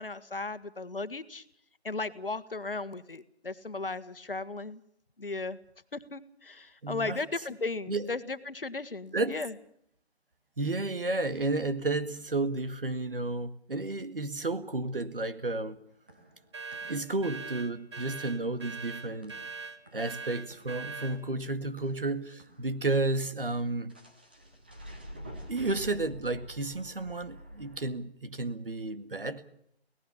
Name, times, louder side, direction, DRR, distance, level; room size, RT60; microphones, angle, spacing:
voice 1, 0.0-1.4 1.8-4.8 5.2-5.6 5.9-9.5, left 3 dB, 55° left, 1.6 m, -36 dB
voice 2, 6.8-7.2 7.9-8.1 9.1-9.4 10.6-15.8 16.9-19.4 19.9-23.9 25.5-29.4, right 2 dB, 55° right, 2.0 m, -32 dB
sound 1, 15.9-22.8 23.9-27.8, equal, 10° right, 1.0 m, -49 dB
sound 2, 16.5-21.2, right 4 dB, 25° right, 1.6 m, -41 dB
25.0 x 18.0 x 7.1 m
figure-of-eight pair, 165°, 32 cm